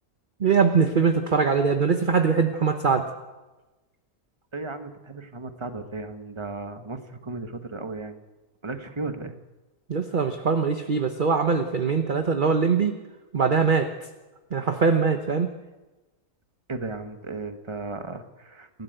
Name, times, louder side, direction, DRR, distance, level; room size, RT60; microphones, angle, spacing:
voice 1, 0.4-3.1 9.9-12.9 13.3-13.9 14.5-15.5, right 5 dB, 35° right, 7 dB, 1.1 m, -22 dB
voice 2, 4.5-8.2 8.6-9.3 16.7-18.8, right 3 dB, 20° right, 7 dB, 1.4 m, -35 dB
29.5 x 12.5 x 8.1 m, 1.1 s
omnidirectional pair, 1.6 m